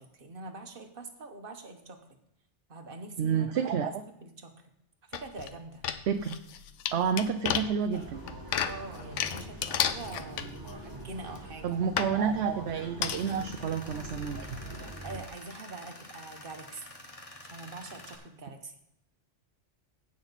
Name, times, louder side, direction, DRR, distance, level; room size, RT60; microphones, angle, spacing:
voice 1, 0.0-2.2 2.7-3.7 4.1-4.6 5.1-5.9 8.6-11.8 15.0-16.9 17.4-18.8, right 3 dB, 45° right, 5 dB, 1.4 m, -44 dB
voice 2, 3.2-3.9 6.1-6.4 6.9-8.2 11.6-14.6, right 7 dB, 65° right, 8 dB, 0.8 m, -29 dB
sound 1, 5.1-5.5 5.8-10.9 11.4-11.5 12.0-12.1 13.0-13.4 13.8-13.9 14.1-14.2, left 9 dB, 75° left, 1.0 m, -32 dB
sound 2, 7.9-15.2, right 2 dB, 15° right, 2.0 m, -44 dB
Tools, 13.1-18.2, left 2 dB, 30° left, 1.5 m, -48 dB
16.0 x 6.4 x 4.1 m, 0.80 s
omnidirectional pair, 1.3 m